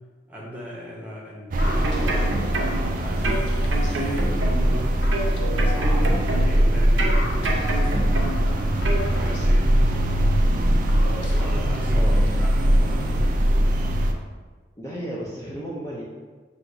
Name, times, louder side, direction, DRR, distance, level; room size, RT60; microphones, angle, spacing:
voice 1, 0.3-2.6 3.0-3.4 3.9-5.3 5.6-7.5 8.3-10.4 11.1-13.8, equal, 10° right, -5 dB, 0.8 m, -37 dB
sound 1, 1.5-14.1, right 1 dB, 45° right, 0.4 m, -21 dB
sound 2, 1.6-12.6, left 1 dB, 65° left, 0.7 m, -39 dB
sound 3, 1.6-2.9 3.2-4.8 5.1-6.6 7.0-8.5 8.8-9.0, right 2 dB, 85° right, 0.7 m, -29 dB
voice 2, 14.8-16.0, right 1 dB, 15° left, -7 dB, 0.5 m, -33 dB
5.9 x 2.8 x 2.6 m, 1.4 s
head